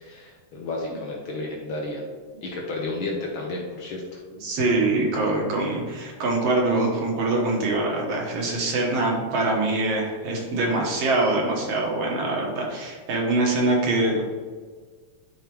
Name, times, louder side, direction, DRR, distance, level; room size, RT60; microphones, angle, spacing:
voice 1, 0.0-2.0 2.4-4.2, left 2 dB, 70° left, -1 dB, 1.2 m, -32 dB
voice 2, 4.4-14.2, right 2 dB, 60° right, -1 dB, 2.2 m, -24 dB
12.0 x 4.9 x 3.1 m, 1.5 s
omnidirectional pair, 3.7 m